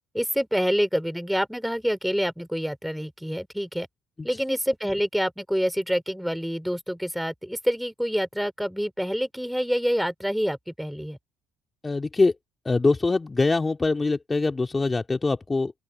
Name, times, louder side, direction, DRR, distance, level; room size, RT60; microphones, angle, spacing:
voice 1, 0.1-3.9 4.2-11.2, equal, ahead, 4.3 m, -27 dB
voice 2, 11.8-12.3 12.6-15.7, left 3 dB, 25° left, 2.5 m, -23 dB
open air
supercardioid pair, 70°, 0 cm